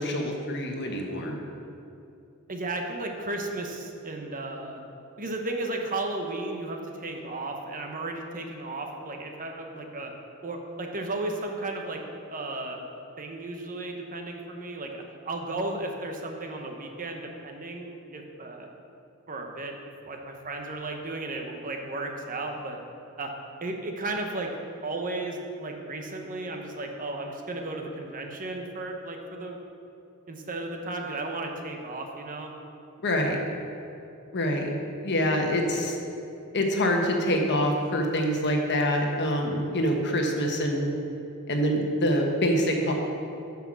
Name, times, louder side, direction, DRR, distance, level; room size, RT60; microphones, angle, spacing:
voice 1, 0.0-1.3 33.0-33.4 34.3-34.7 35.0-36.0 36.5-40.9 41.5-42.9, equal, 50° left, 2 dB, 1.2 m, -25 dB
voice 2, 2.5-4.8 5.2-10.1 10.4-12.8 13.2-18.7 19.3-22.8 23.2-23.3 23.6-24.5 24.8-29.6 30.3-32.5 35.5-35.6, right 2 dB, 40° right, 3 dB, 1.0 m, -34 dB
10.0 x 5.8 x 6.3 m, 2.7 s
head